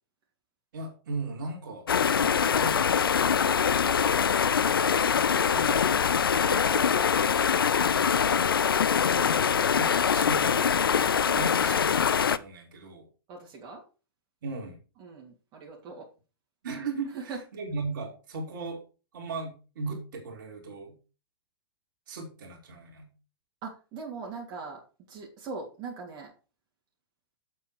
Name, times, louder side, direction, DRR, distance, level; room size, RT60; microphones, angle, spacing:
voice 1, 0.7-3.4 5.5-5.9 6.5-7.0 7.9-8.5 9.5-13.1 14.4-14.8 16.6-18.8 19.1-21.0 22.1-23.1, right 3 dB, 60° right, 1 dB, 3.8 m, -38 dB
sound 1, 1.9-12.4, left 7 dB, 70° left, 0.6 m, -24 dB
voice 2, 13.3-13.8 15.0-16.1 17.1-17.4 23.6-24.8 25.1-26.3, right 4 dB, 35° right, -2 dB, 3.2 m, -41 dB
8.0 x 7.5 x 4.9 m, 0.33 s
figure-of-eight pair, 100°, 12 cm